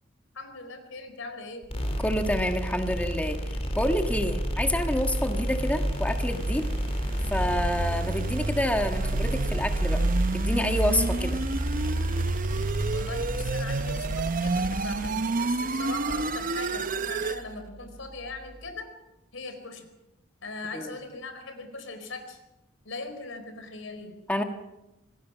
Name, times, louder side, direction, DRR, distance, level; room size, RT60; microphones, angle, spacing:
voice 1, 0.3-1.7 12.9-18.9 19.3-19.9 20.4-22.4 22.8-24.2, left 3 dB, 80° left, 8 dB, 4.5 m, -40 dB
sound 1, 1.6-18.7, equal, 30° left, 4.5 m, -32 dB
voice 2, 2.0-6.7 7.3-10.0 10.3-11.4 20.7-21.0 24.3-24.4, left 1 dB, 10° left, 4 dB, 1.5 m, -28 dB
sound 2, 5.2-17.4, right 3 dB, 45° right, 0.7 m, -29 dB
26.5 x 19.0 x 6.0 m, 0.93 s
head